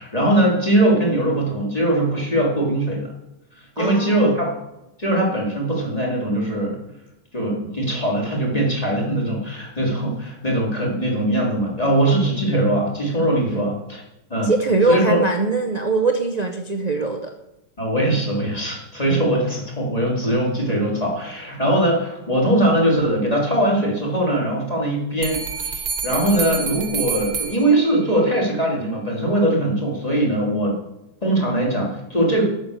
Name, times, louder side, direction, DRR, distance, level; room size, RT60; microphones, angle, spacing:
voice 1, 0.0-3.1 3.8-4.5 5.0-6.8 7.3-14.0 14.3-14.5 14.9-15.2 17.8-30.7 31.2-32.4, right 1 dB, 20° left, -3 dB, 3.2 m, -21 dB
voice 2, 3.8-4.4 13.5-13.6 14.4-17.3 19.1-19.2, right 3 dB, 90° right, 4 dB, 0.3 m, -22 dB
sound 1, 25.2-28.3, right 6 dB, 60° right, 1.6 m, -28 dB
9.1 x 7.8 x 6.6 m, 0.92 s
omnidirectional pair, 2.1 m